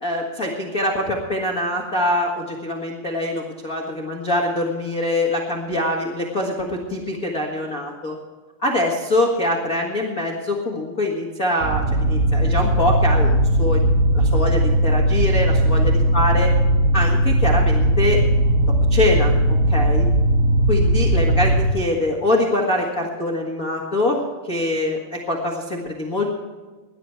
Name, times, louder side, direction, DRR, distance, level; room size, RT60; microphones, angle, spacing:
voice 1, 0.0-8.1 8.6-13.9 14.1-16.5 16.9-18.2 18.9-20.1 20.7-26.3, left 1 dB, 65° left, -1 dB, 0.8 m, -24 dB
sound 1, 11.6-21.6, right 1 dB, 80° right, 3.8 m, -18 dB
19.0 x 11.0 x 4.6 m, 1.4 s
omnidirectional pair, 4.9 m